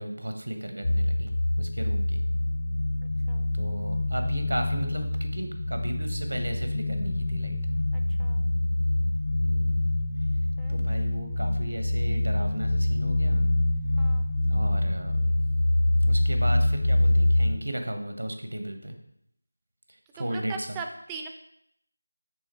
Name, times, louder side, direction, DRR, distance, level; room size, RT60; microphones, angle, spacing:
voice 1, 0.0-1.3 1.6-2.2 3.5-7.6 9.4-9.7 10.7-13.5 14.5-15.4 16.1-19.0 20.1-20.8, right 1 dB, 90° right, 5 dB, 1.2 m, -34 dB
sound 1, 0.8-17.6, left 1 dB, 50° left, 0.5 m, -25 dB
voice 2, 20.2-21.3, right 5 dB, 10° right, 4 dB, 0.4 m, -39 dB
6.2 x 3.6 x 4.5 m, 0.72 s
figure-of-eight pair, 170°, 0 cm